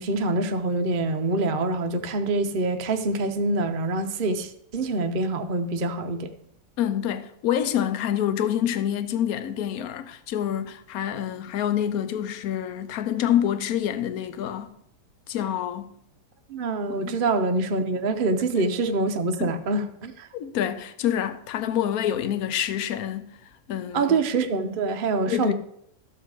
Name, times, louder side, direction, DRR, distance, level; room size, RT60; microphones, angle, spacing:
voice 1, 0.0-6.3 16.5-20.3 23.9-25.5, right 3 dB, 50° right, 0.6 m, -25 dB
voice 2, 6.8-14.7 15.3-15.9 17.0-17.1 19.4-19.5 20.3-23.3 23.7-24.2 25.3-25.5, left 10 dB, 65° left, 1.2 m, -27 dB
13.0 x 7.2 x 4.8 m
omnidirectional pair, 1.8 m